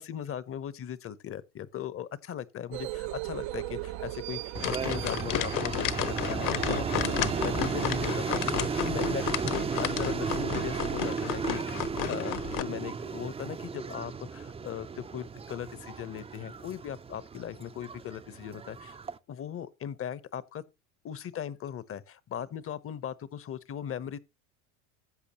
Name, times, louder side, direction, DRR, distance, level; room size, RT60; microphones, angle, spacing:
voice 1, 0.0-19.0 19.3-20.6 21.0-24.2, left 9 dB, 30° left, 0.9 m, -38 dB
sound 1, 2.7-11.0, right 17 dB, 65° right, 0.8 m, -39 dB
sound 2, 4.5-19.2, right 5 dB, 15° right, 0.6 m, -34 dB
sound 3, 4.6-12.6, left 11 dB, 50° left, 1.2 m, -33 dB
14.5 x 8.3 x 2.9 m
supercardioid pair, 100°, 42 cm